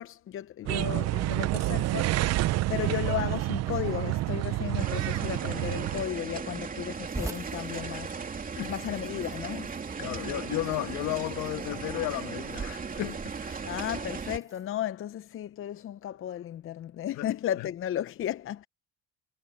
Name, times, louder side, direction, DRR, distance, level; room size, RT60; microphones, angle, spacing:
voice 1, 0.0-8.2 8.7-9.7 13.6-18.7, left 11 dB, 45° left, 0.8 m, -34 dB
sound 1, 0.6-6.0, right 16 dB, 60° right, 0.7 m, -28 dB
sound 2, 4.8-14.4, right 5 dB, 30° right, 2.9 m, -37 dB
sound 3, 7.1-14.7, right 2 dB, 10° right, 2.0 m, -46 dB
voice 2, 10.0-13.7 17.1-17.3 17.6-17.7, left 16 dB, 70° left, 1.5 m, -34 dB
cardioid pair, 100°, 29 cm